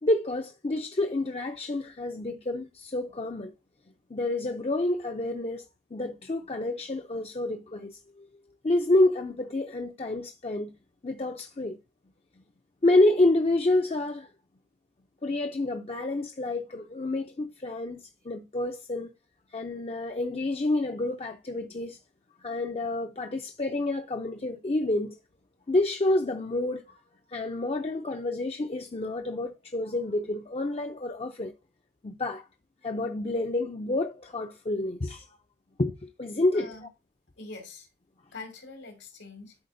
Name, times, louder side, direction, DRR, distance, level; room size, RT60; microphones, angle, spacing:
voice 1, 0.0-3.5 4.1-5.6 5.9-8.3 8.6-10.7 11.0-11.8 12.8-14.3 15.2-19.1 19.5-22.0 22.4-25.2 25.7-26.8 27.3-31.5 32.0-32.5 32.8-35.3 35.8-36.7, left 2 dB, 35° left, 0.5 m, -28 dB
voice 2, 36.5-36.9 37.4-37.9 38.3-39.6, left 3 dB, 85° left, 2.4 m, -44 dB
11.5 x 4.3 x 2.6 m
head